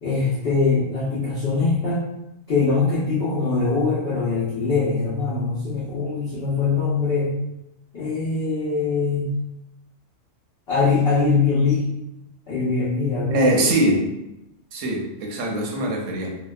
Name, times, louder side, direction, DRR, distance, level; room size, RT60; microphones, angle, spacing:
voice 1, 0.0-2.1 2.5-7.3 7.9-9.3 10.7-11.9 12.5-13.7, left 4 dB, 55° left, -9 dB, 0.8 m, -22 dB
voice 2, 13.3-14.1 14.7-16.4, right 1 dB, 90° right, -1 dB, 1.0 m, -22 dB
2.7 x 2.2 x 2.2 m, 0.89 s
omnidirectional pair, 1.3 m